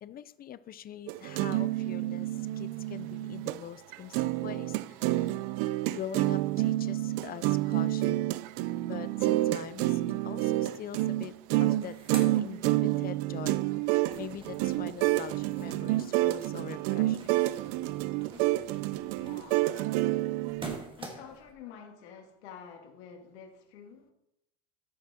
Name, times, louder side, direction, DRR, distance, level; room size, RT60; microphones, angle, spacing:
voice 1, 0.0-5.5 5.9-8.3 8.8-11.3 11.6-17.4, left 10 dB, 30° left, 15 dB, 0.6 m, -44 dB
sound 1, 1.1-3.6 3.9-20.8, right 17 dB, 65° right, 0.6 m, -29 dB
sound 2, 11.7-13.3 13.6-21.5, right 2 dB, 15° right, 1.9 m, -47 dB
voice 2, 19.1-24.1, left 7 dB, 85° left, 3 dB, 2.3 m, -50 dB
14.0 x 6.0 x 4.4 m, 0.81 s
supercardioid pair, 120°, 32 cm